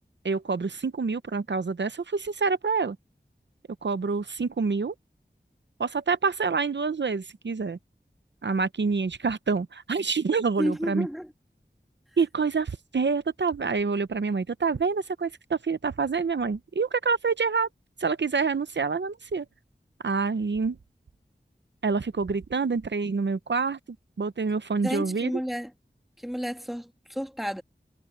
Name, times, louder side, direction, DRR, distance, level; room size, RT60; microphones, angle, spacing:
voice 1, 0.2-3.0 3.8-4.9 5.8-7.8 8.4-11.1 12.2-17.7 18.0-19.5 20.0-20.8 21.8-23.8 24.2-25.3, right 4 dB, 90° right, 0.7 m, -27 dB
voice 2, 10.6-11.3 24.8-25.7 26.2-27.6, equal, ahead, 2.1 m, -31 dB
wide cardioid pair, 45°, 18 cm